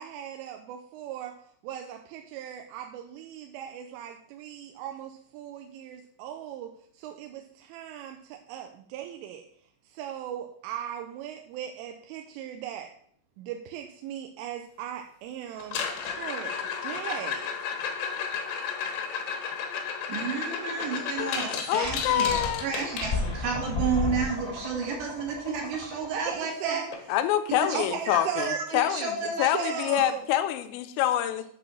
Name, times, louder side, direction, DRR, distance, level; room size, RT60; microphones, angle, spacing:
voice 1, 0.0-1.3 1.6-9.5 9.9-12.9 13.4-16.6 16.8-17.5 26.3-26.9 27.7-28.6 29.5-30.2, right 10 dB, 85° right, 4 dB, 3.1 m, -38 dB
sound 1, 15.6-23.6 25.8-25.9 26.2-26.5 26.9-27.0 27.6-27.7 29.6-29.7, left 6 dB, 70° left, 2.8 m, -33 dB
voice 2, 20.1-26.8 27.5-29.8, right 5 dB, 65° right, -1 dB, 3.8 m, -32 dB
voice 3, 21.7-22.7 27.1-31.4, left 12 dB, 90° left, 9 dB, 3.3 m, -26 dB
sound 2, 21.8-26.4, left 2 dB, 35° left, 1.2 m, -34 dB
8.5 x 4.1 x 6.9 m, 0.63 s
omnidirectional pair, 5.8 m